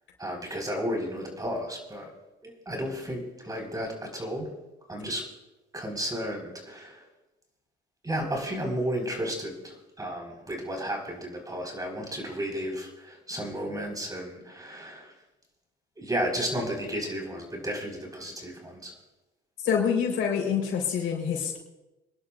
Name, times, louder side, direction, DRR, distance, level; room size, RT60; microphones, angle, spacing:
voice 1, 0.2-2.0 2.4-4.5 4.9-5.2 5.7-7.0 8.0-15.0 16.0-18.9, equal, 20° right, 1 dB, 4.8 m, -33 dB
voice 2, 19.6-21.6, left 7 dB, 80° left, 0 dB, 4.4 m, -26 dB
27.5 x 11.0 x 2.6 m, 1.0 s
cardioid pair, 90°, 20 cm